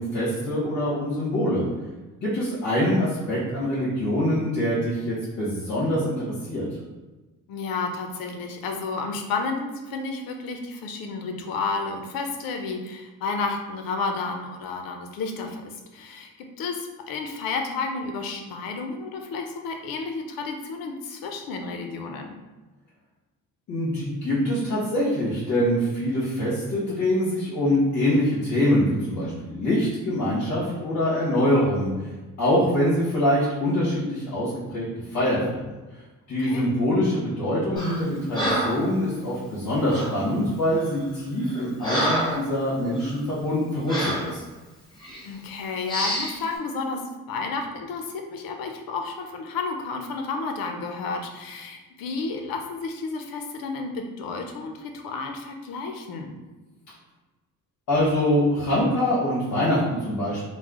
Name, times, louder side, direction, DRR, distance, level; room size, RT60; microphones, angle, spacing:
voice 1, 0.0-1.7 2.2-6.6 23.7-31.9 32.4-34.9 35.1-35.6 36.3-44.4 57.9-60.4, left 1 dB, 60° left, -9 dB, 1.2 m, -24 dB
voice 2, 7.5-22.4 36.4-36.7 45.2-56.4, left 4 dB, 80° left, 4 dB, 0.6 m, -31 dB
Breathing, 37.8-38.0 38.3-38.9 39.9-40.2 40.8-41.0 41.4-42.5 42.9-43.1 43.9-44.3 45.0-45.2 45.9-46.4, equal, 15° left, 0.9 m, -27 dB
3.2 x 2.0 x 3.6 m, 1.2 s
cardioid pair, 150°, 34 cm